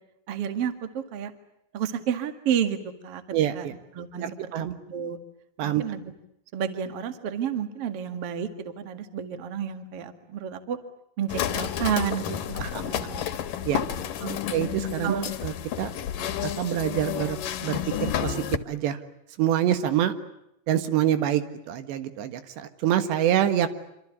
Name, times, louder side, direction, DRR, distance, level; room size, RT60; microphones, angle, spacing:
voice 1, 0.3-1.3 1.7-2.8 3.0-3.7 4.0-4.5 4.9-5.2 5.6-6.1 6.5-10.8 11.2-12.4 12.8-13.3 14.2-14.4 15.0-15.2, right 8 dB, 45° right, 9 dB, 2.2 m, -30 dB
voice 2, 3.3-3.7 4.2-4.7 5.6-5.8 12.6-12.9 13.2-13.3 13.7-13.8 14.5-15.9 16.4-19.0 19.4-20.1 20.7-23.7, right 11 dB, 80° right, 10 dB, 3.7 m, -26 dB
sound 1, 11.3-18.6, left 9 dB, 65° left, 2.6 m, -31 dB
27.0 x 26.0 x 8.4 m, 0.79 s
omnidirectional pair, 4.9 m